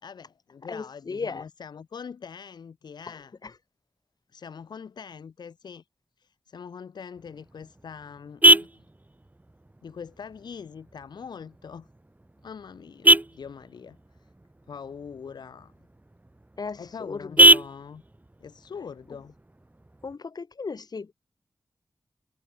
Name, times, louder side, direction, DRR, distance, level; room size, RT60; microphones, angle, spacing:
voice 1, 0.0-3.4 4.3-5.8 6.2-8.8 9.8-11.9 12.4-14.3 14.7-15.7 16.8-18.0 18.4-19.3, left 6 dB, 90° left, 3.2 m, -43 dB
voice 2, 0.7-1.4 3.1-3.5 16.6-17.5 20.0-21.1, left 4 dB, 65° left, 7.8 m, -36 dB
Vehicle horn car horn honking, 7.2-20.2, right 1 dB, 25° right, 1.9 m, -25 dB
cardioid pair, 45°, 7 cm